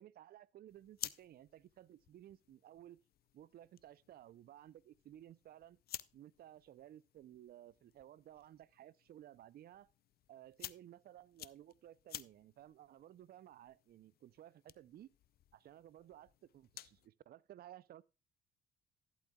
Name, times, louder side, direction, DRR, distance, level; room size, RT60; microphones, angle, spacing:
voice 1, 0.0-3.0 3.3-5.8 6.1-9.9 10.3-15.1 15.5-18.0, right 12 dB, 50° right, 0.5 m, -57 dB
sound 1, 0.7-17.1, left 12 dB, 50° left, 0.5 m, -54 dB
12.0 x 11.0 x 2.3 m
hypercardioid pair, 55°, 20 cm